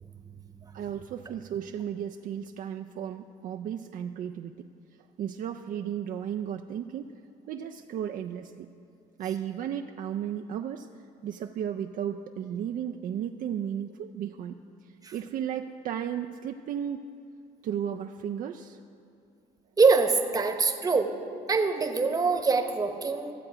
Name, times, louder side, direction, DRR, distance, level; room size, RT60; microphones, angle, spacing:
voice 1, 0.7-4.7 5.2-7.2 7.5-8.7 9.2-10.9 11.2-17.1 17.6-18.8, right 9 dB, 55° right, 4 dB, 0.4 m, -34 dB
voice 2, 19.8-21.1 21.5-23.3, right 4 dB, 20° right, 5 dB, 0.9 m, -24 dB
15.0 x 7.6 x 4.9 m, 2.6 s
cardioid pair, 110°, 17 cm